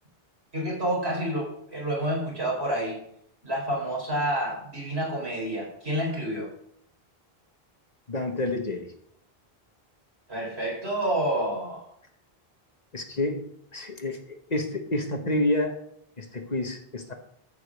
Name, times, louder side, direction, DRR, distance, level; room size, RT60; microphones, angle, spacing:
voice 1, 0.5-3.0 3.4-6.5 10.3-11.8, right 1 dB, 85° right, -3 dB, 4.9 m, -29 dB
voice 2, 8.1-8.9 12.9-15.8 16.2-17.1, left 1 dB, 40° left, 5 dB, 1.4 m, -29 dB
14.0 x 5.1 x 6.4 m, 0.70 s
omnidirectional pair, 1.0 m